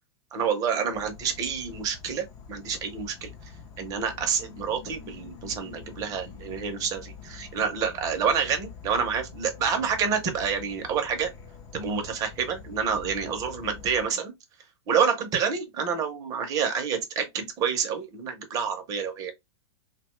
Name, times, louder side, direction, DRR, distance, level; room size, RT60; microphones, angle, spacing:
voice 1, 0.3-3.3 3.8-11.3 11.7-14.3 14.9-19.3, right 6 dB, 25° right, 0.6 m, -28 dB
Insect / Frog, 0.9-14.1, left 6 dB, 30° left, 0.5 m, -46 dB
2.6 x 2.2 x 3.0 m
supercardioid pair, 155°, 14 cm